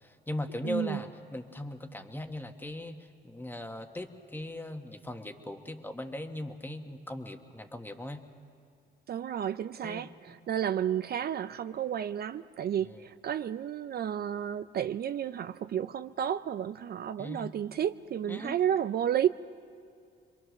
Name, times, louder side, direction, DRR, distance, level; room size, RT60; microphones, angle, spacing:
voice 1, 0.0-8.2 9.8-10.1 12.8-13.0 17.2-17.5 18.3-18.6, left 1 dB, 10° left, 1.5 m, -39 dB
voice 2, 0.6-1.0 9.1-19.3, right 9 dB, 55° right, 0.5 m, -32 dB
26.5 x 23.0 x 6.4 m
cardioid pair, 90°, 20 cm